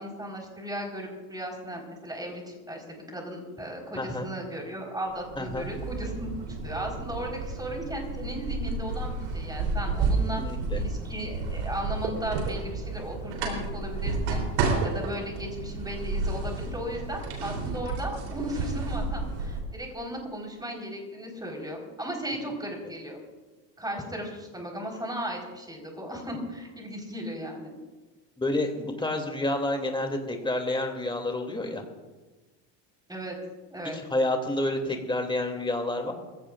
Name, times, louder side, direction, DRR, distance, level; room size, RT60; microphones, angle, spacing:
voice 1, 0.0-6.3 6.6-10.4 10.7-23.2 23.8-27.7 33.1-33.4 33.7-34.0, equal, 10° right, 0 dB, 4.4 m, -36 dB
voice 2, 3.9-4.3 5.4-5.7 10.4-10.8 28.4-31.8 33.8-36.1, left 1 dB, 10° left, 3 dB, 2.7 m, -29 dB
sound 1, 5.1-19.6, right 3 dB, 85° right, 3.7 m, -31 dB
25.0 x 16.0 x 2.5 m, 1.2 s
supercardioid pair, 105°, 49 cm